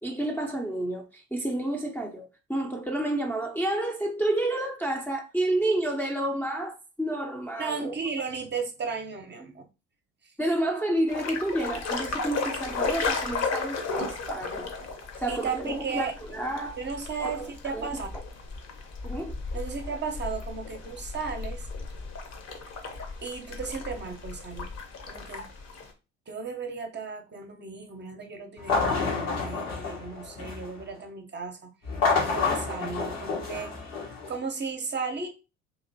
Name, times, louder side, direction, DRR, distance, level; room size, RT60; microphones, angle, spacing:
voice 1, 0.0-7.9 10.4-14.7 15.2-16.8 17.2-17.5 17.7-17.9 19.0-19.3, right 1 dB, 5° left, 0.7 m, -30 dB
voice 2, 7.6-9.7 10.2-10.3 15.3-16.2 16.8-18.1 19.5-21.7 23.2-24.7 25.1-25.4 26.3-31.7 32.1-33.8 34.3-35.3, right 5 dB, 30° right, 0.8 m, -35 dB
sound 1, 11.1-25.9, left 4 dB, 45° left, 0.9 m, -35 dB
sound 2, 28.6-30.8 31.8-34.4, left 4 dB, 80° left, 1.2 m, -28 dB
2.9 x 2.8 x 2.7 m
hypercardioid pair, 55°, 37 cm